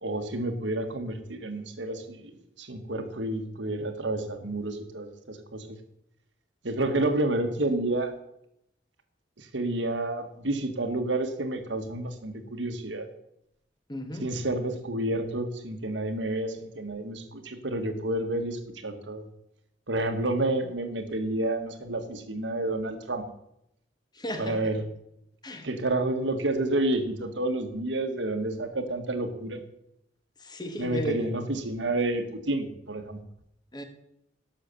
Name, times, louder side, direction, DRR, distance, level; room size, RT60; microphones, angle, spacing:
voice 1, 0.0-5.8 6.6-8.1 9.4-13.1 14.2-19.2 19.9-23.2 24.4-24.8 25.6-29.6 30.8-33.2, right 2 dB, 80° right, 7 dB, 1.5 m, -30 dB
voice 2, 13.9-14.3 24.2-24.7 25.4-25.7 30.4-31.2 33.7-33.8, equal, 25° left, 7 dB, 1.4 m, -34 dB
11.5 x 6.7 x 6.9 m, 0.79 s
head